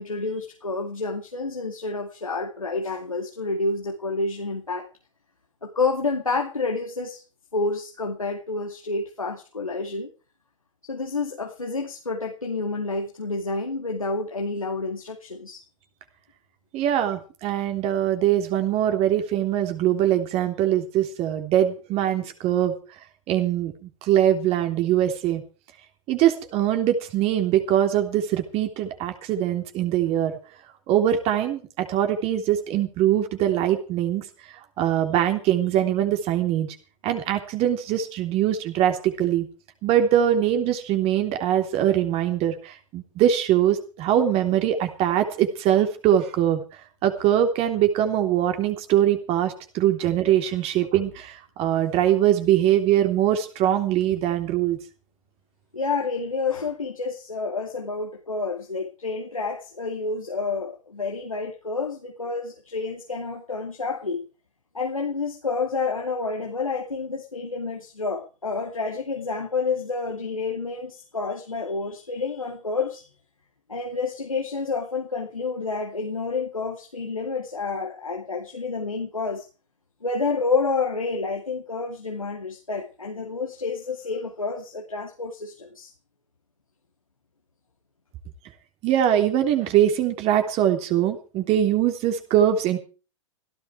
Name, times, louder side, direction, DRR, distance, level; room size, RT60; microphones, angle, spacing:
voice 1, 0.0-4.9 5.6-7.2 7.5-10.1 10.9-15.6 55.7-64.2 64.7-73.1 73.7-79.5 80.0-85.9, left 4 dB, 90° left, 1 dB, 2.6 m, -29 dB
voice 2, 16.7-22.7 23.3-25.4 26.1-30.3 30.9-34.2 34.8-36.7 37.0-39.5 39.8-46.6 47.0-54.8 88.8-92.8, right 11 dB, 35° right, 6 dB, 3.2 m, -22 dB
17.0 x 15.5 x 4.7 m, 0.36 s
figure-of-eight pair, 105°, 17 cm